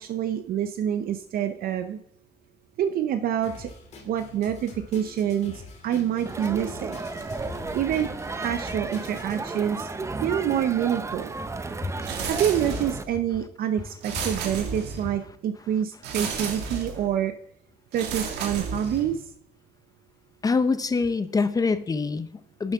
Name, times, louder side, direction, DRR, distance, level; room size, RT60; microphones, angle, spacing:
voice 1, 0.0-2.0 2.8-3.7 4.1-7.0 7.7-9.9 10.2-11.3 12.3-17.3 17.9-19.2, right 9 dB, 60° right, 9 dB, 0.7 m, -27 dB
Drum kit, 3.4-9.4, left 4 dB, 40° left, 2.0 m, -45 dB
Crowd, 6.3-13.0, right 3 dB, 15° right, 0.6 m, -33 dB
sound 1, 12.0-13.1 14.0-15.2 16.0-17.1 17.9-19.2, right 5 dB, 85° right, 1.9 m, -33 dB
voice 2, 20.4-22.7, left 4 dB, 20° left, 12 dB, 0.7 m, -25 dB
11.5 x 7.3 x 3.6 m, 0.78 s
cardioid pair, 110°, 17 cm